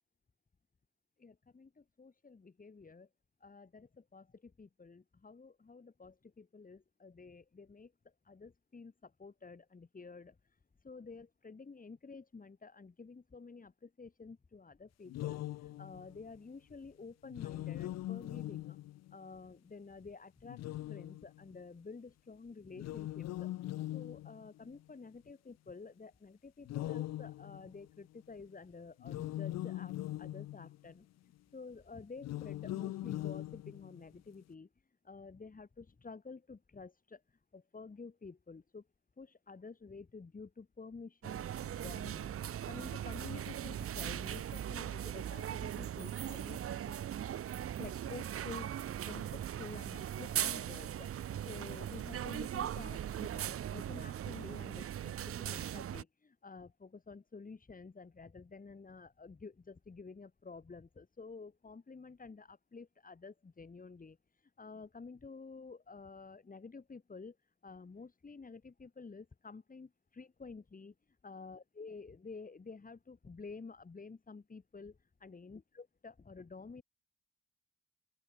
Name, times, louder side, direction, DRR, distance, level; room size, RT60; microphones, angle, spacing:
voice 1, 1.2-3.1 3.4-18.8 19.1-20.6 20.9-23.5 23.9-34.7 35.0-38.9 39.2-42.3 42.6-47.0 47.8-67.4 67.6-76.8, left 4 dB, 30° left, 4.3 m, -51 dB
sound 1, 15.1-16.2 17.2-19.2 20.4-21.6 22.7-24.8 26.7-28.0 29.0-30.9 32.2-34.2, left 15 dB, 60° left, 0.5 m, -41 dB
sound 2, 41.2-56.0, right 10 dB, 50° right, 0.8 m, -39 dB
open air
cardioid pair, 90°, 30 cm